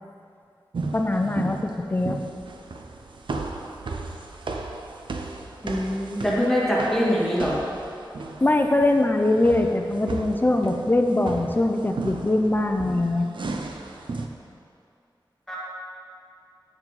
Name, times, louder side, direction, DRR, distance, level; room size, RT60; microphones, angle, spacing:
sound 1, 0.7-14.3, right 3 dB, 80° right, 0.6 m, -35 dB
voice 1, 0.9-2.2 8.4-13.3, left 2 dB, 25° left, 4 dB, 0.5 m, -22 dB
voice 2, 5.6-7.6 15.5-15.6, equal, 5° left, -7 dB, 2.0 m, -23 dB
9.0 x 7.1 x 4.0 m, 2.4 s
wide cardioid pair, 85°, 8 cm